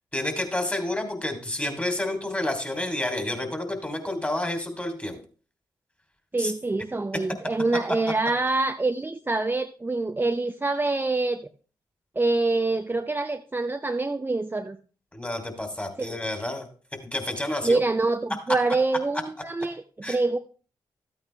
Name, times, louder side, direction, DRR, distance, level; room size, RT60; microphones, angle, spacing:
voice 1, 0.1-5.2 6.4-6.5 15.1-16.6 17.1-17.8 20.0-20.2, left 1 dB, 15° left, 6 dB, 3.1 m, -29 dB
voice 2, 6.3-11.5 12.2-14.8 16.0-16.2 17.6-20.4, right 3 dB, 20° right, 7 dB, 0.7 m, -26 dB
13.0 x 8.9 x 3.3 m, 0.38 s
supercardioid pair, 45°, 10 cm